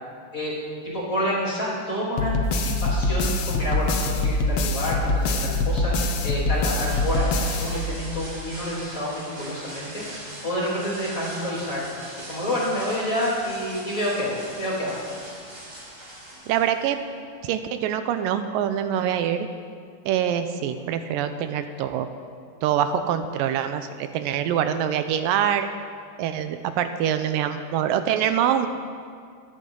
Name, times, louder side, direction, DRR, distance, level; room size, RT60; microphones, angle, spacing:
voice 1, 0.8-11.8 12.3-15.0, equal, 25° left, -7 dB, 3.3 m, -28 dB
sound 1, 2.2-8.3, left 2 dB, 75° left, 1.4 m, -24 dB
sound 2, 6.7-17.4, right 1 dB, 50° right, 5.4 m, -41 dB
voice 2, 16.5-17.0 17.4-19.5 20.1-22.1 22.6-25.7 26.2-28.7, right 9 dB, 85° right, 9 dB, 2.3 m, -24 dB
23.0 x 9.3 x 3.8 m, 2.1 s
omnidirectional pair, 4.0 m